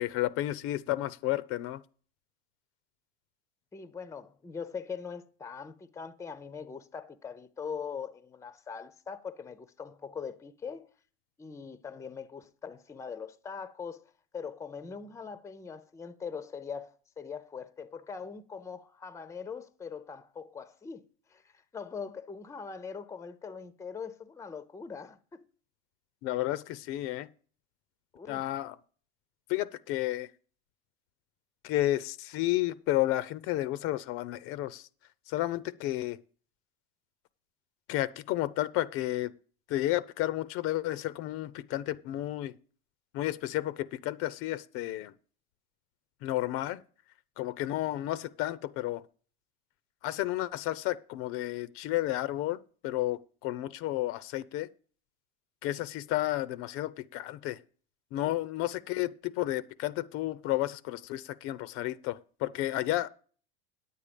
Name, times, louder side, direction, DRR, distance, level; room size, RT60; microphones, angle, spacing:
voice 1, 0.0-1.8 26.2-27.3 28.3-28.8 29.5-30.3 31.6-34.9 35.3-36.2 37.9-39.3 39.7-42.5 43.1-45.1 46.2-46.8 47.4-49.0 50.0-54.7 55.6-57.6 58.1-63.1, left 15 dB, 50° left, 0.6 m, -32 dB
voice 2, 3.7-10.9 11.4-21.0 21.3-21.4 21.7-25.4 28.1-28.5 58.2-58.3, left 6 dB, 10° left, 0.6 m, -42 dB
9.6 x 8.4 x 5.1 m
supercardioid pair, 120°, 29 cm